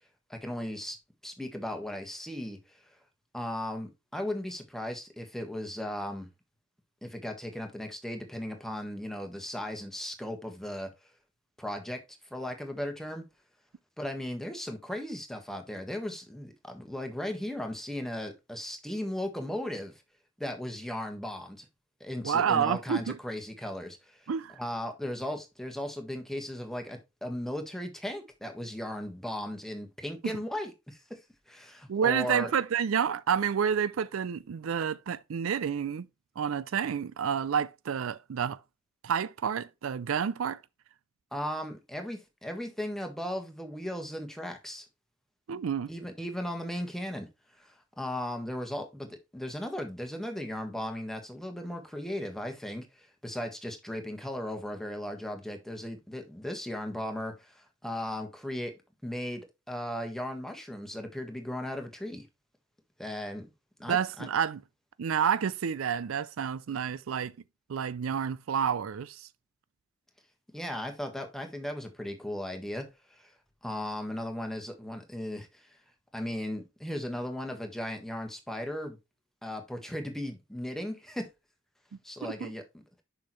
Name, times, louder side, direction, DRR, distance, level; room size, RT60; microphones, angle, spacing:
voice 1, 0.3-1.0 1.2-2.9 3.3-6.3 7.0-10.9 11.6-12.0 12.3-13.2 14.0-20.0 20.4-21.7 22.0-24.3 24.6-31.2 31.5-32.5 41.3-44.9 45.9-47.3 47.6-58.7 59.0-59.4 59.7-62.3 63.0-63.5 63.8-64.3 70.5-73.3 73.6-75.7 76.1-79.0 79.4-81.3 82.0-82.6, left 1 dB, ahead, 1.4 m, -37 dB
voice 2, 22.2-23.2 24.3-24.5 31.9-36.1 36.4-38.6 39.0-40.6 45.5-45.9 63.9-64.6 65.0-67.3 67.7-69.3 82.2-82.5, right 7 dB, 80° right, 0.4 m, -29 dB
6.8 x 5.8 x 3.1 m
head